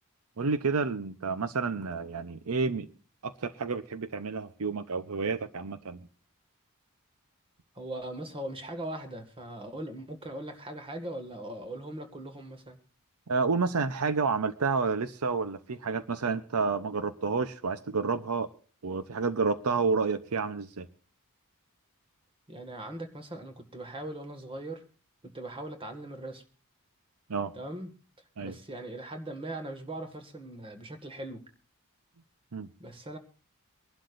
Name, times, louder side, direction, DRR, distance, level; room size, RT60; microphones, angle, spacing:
voice 1, 0.4-2.9 3.2-6.0 13.3-18.5 18.8-20.9 27.3-27.5 28.4-28.6 32.5-32.7, right 4 dB, 75° right, 12 dB, 0.7 m, -30 dB
voice 2, 7.8-12.8 22.5-24.8 25.2-26.4 27.5-27.9 28.4-31.4 32.8-33.2, right 1 dB, 25° right, 6 dB, 1.8 m, -40 dB
24.0 x 11.5 x 2.5 m, 0.37 s
head